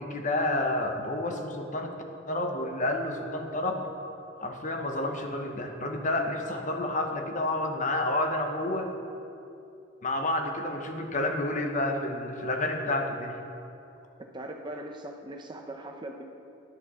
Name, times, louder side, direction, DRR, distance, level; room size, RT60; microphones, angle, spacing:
voice 1, 0.0-1.9 2.3-3.8 4.4-8.9 10.0-13.3, left 1 dB, 40° left, 3 dB, 1.0 m, -30 dB
voice 2, 14.3-16.2, right 1 dB, 25° right, 3 dB, 0.8 m, -40 dB
17.0 x 11.0 x 3.8 m, 2.8 s
head